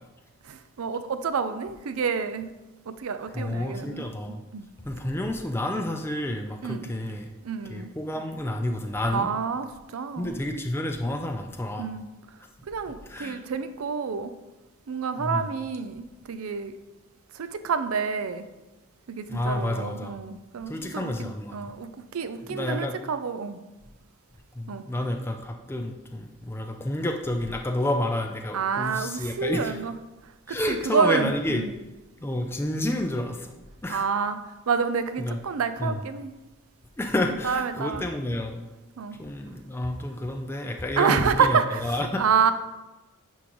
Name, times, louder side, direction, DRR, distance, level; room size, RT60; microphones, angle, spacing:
voice 1, 0.5-2.5 2.9-4.1 4.5-4.7 6.6-6.9 7.4-7.9 9.1-10.4 11.8-12.1 12.7-14.3 14.9-16.7 17.4-18.4 19.1-23.6 24.7-24.8 28.5-30.0 30.5-31.7 33.9-34.4 34.7-36.3 37.4-38.0 39.0-39.2 41.0-42.5, right 6 dB, 85° right, 11 dB, 0.5 m, -28 dB
voice 2, 3.3-4.4 4.9-7.3 7.7-9.3 10.2-11.9 13.1-13.4 15.2-15.5 19.3-20.1 20.7-21.6 22.5-22.9 24.6-29.8 30.5-31.6 32.2-33.6 33.8-34.0 35.2-35.4 35.8-36.0 37.0-38.6 39.2-42.2, left 1 dB, 10° left, 3 dB, 0.4 m, -29 dB
9.8 x 3.6 x 3.0 m, 1.1 s
head